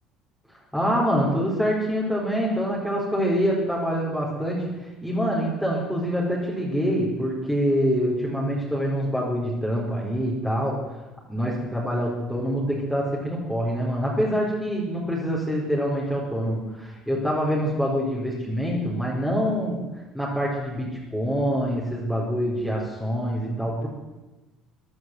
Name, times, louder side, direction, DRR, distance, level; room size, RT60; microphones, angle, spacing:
voice 1, 0.7-4.7 5.0-10.8 11.3-19.8 20.1-23.9, equal, ahead, -6 dB, 4.4 m, -25 dB
15.5 x 11.0 x 7.9 m, 1.1 s
supercardioid pair, 95°, 0 cm